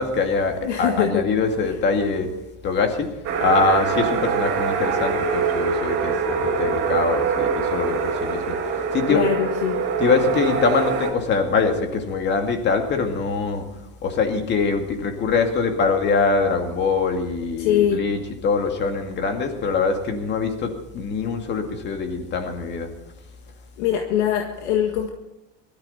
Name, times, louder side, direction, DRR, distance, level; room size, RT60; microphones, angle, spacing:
voice 1, 0.0-2.3 2.6-3.1 3.4-9.3 10.0-13.6 14.0-22.9, left 4 dB, 30° left, 5 dB, 2.2 m, -23 dB
voice 2, 0.6-1.2 9.1-9.8 17.6-18.0 23.8-25.1, left 9 dB, 80° left, 3 dB, 1.7 m, -22 dB
sound 1, 3.2-11.1, right 5 dB, 40° right, 4.0 m, -24 dB
19.5 x 13.5 x 4.3 m, 0.94 s
supercardioid pair, 150°, 34 cm